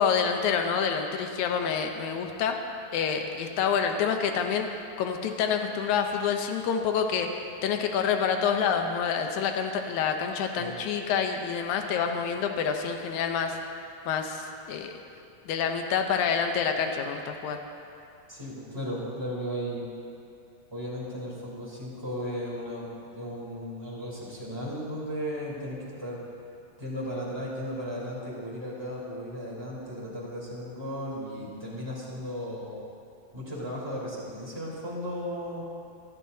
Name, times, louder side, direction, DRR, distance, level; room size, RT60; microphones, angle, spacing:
voice 1, 0.0-2.6 2.9-4.7 5.0-7.3 7.6-13.6 14.1-14.9 15.5-17.6, left 7 dB, 70° left, 4 dB, 1.9 m, -27 dB
voice 2, 18.3-19.8 20.7-26.2 26.8-32.7 33.3-35.6, equal, 5° right, -7 dB, 3.3 m, -35 dB
23.5 x 14.0 x 2.8 m, 2.6 s
omnidirectional pair, 4.4 m